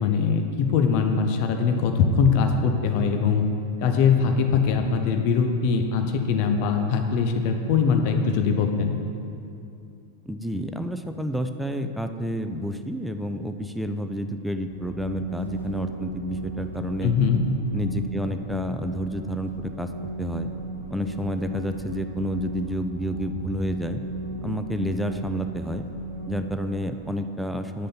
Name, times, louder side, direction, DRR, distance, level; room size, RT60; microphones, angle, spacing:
voice 1, 0.0-3.4 3.8-8.9 17.0-17.4, left 5 dB, 45° left, 5 dB, 0.7 m, -22 dB
voice 2, 10.3-17.1 17.7-19.9 20.2-20.5 20.9-24.0 24.4-25.8 26.3-27.9, equal, ahead, 7 dB, 0.4 m, -30 dB
sound 1, 14.7-26.8, right 1 dB, 85° right, 1.0 m, -34 dB
9.5 x 6.4 x 4.2 m, 2.6 s
figure-of-eight pair, 90°, 0 cm